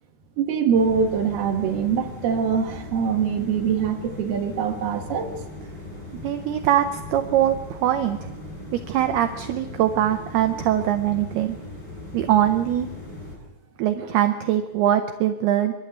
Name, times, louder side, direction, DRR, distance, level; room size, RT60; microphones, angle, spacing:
voice 1, 0.4-5.3 14.0-14.1, right 6 dB, 65° right, 3 dB, 3.1 m, -23 dB
sound 1, 0.7-13.4, left 2 dB, 25° left, 7.1 m, -38 dB
voice 2, 6.2-8.3 8.9-11.6 12.1-12.9 13.8-15.7, right 11 dB, 85° right, 7 dB, 2.2 m, -22 dB
27.0 x 12.0 x 8.0 m, 1.1 s
omnidirectional pair, 5.6 m